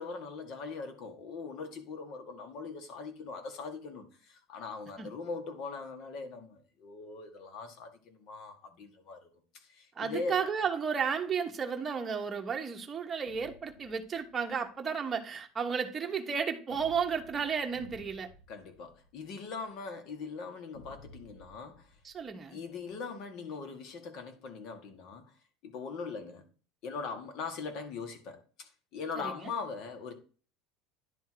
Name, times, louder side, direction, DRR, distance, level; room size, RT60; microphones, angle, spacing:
voice 1, 0.0-9.3 9.5-10.4 18.5-22.0 22.5-25.3 25.6-26.5 26.8-30.1, left 4 dB, 50° left, 1.7 m, -41 dB
voice 2, 10.0-18.3 22.0-22.6 29.2-29.5, right 6 dB, 20° right, 1.1 m, -33 dB
sound 1, 13.3-14.6 16.7-19.7 20.7-22.9, left 2 dB, 85° left, 3.3 m, -56 dB
10.5 x 3.6 x 4.7 m
cardioid pair, 145°, 0 cm